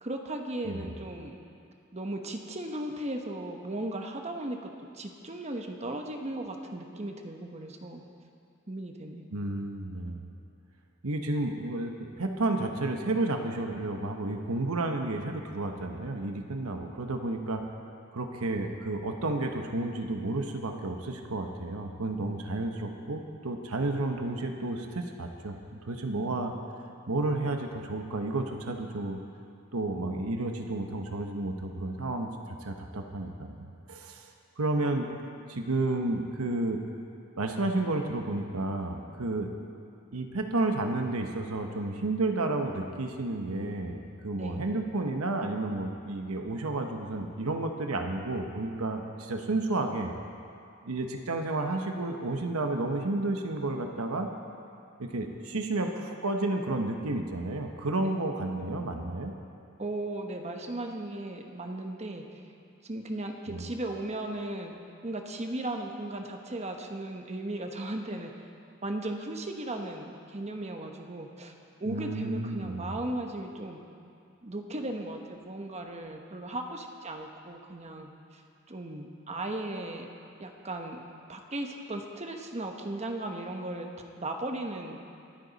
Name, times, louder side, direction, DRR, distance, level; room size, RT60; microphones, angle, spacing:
voice 1, 0.0-1.3 1.9-8.0 8.7-9.3 26.2-26.4 44.3-44.7 58.0-58.3 59.8-62.2 62.8-64.7 65.0-68.3 68.8-71.5 71.8-73.8 74.4-78.4 78.7-80.1 80.4-81.0 81.3-83.9 84.2-85.0, right 1 dB, 30° right, 3 dB, 1.1 m, -36 dB
voice 2, 9.3-10.3 11.0-17.7 18.1-26.5 27.1-29.2 29.7-32.3 32.6-34.3 34.6-35.1 35.5-36.8 37.4-39.5 40.1-50.1 50.8-54.3 55.0-59.4 63.5-63.7 71.9-73.0, right 2 dB, 85° right, 3 dB, 1.1 m, -31 dB
23.5 x 9.2 x 4.1 m, 2.5 s
head